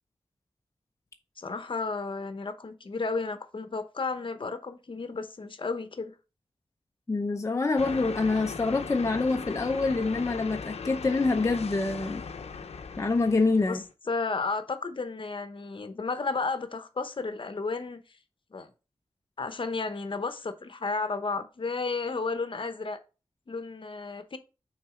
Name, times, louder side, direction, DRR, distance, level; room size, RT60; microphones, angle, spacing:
voice 1, 1.4-6.1 13.7-18.0 18.5-18.7 19.4-23.0 23.5-24.4, left 4 dB, 55° left, 0.9 m, -33 dB
voice 2, 7.1-12.2 13.0-13.8, left 3 dB, 30° left, 0.6 m, -26 dB
sound 1, 7.8-13.9, left 5 dB, 90° left, 0.7 m, -39 dB
6.0 x 4.0 x 4.9 m
wide cardioid pair, 80°, 11 cm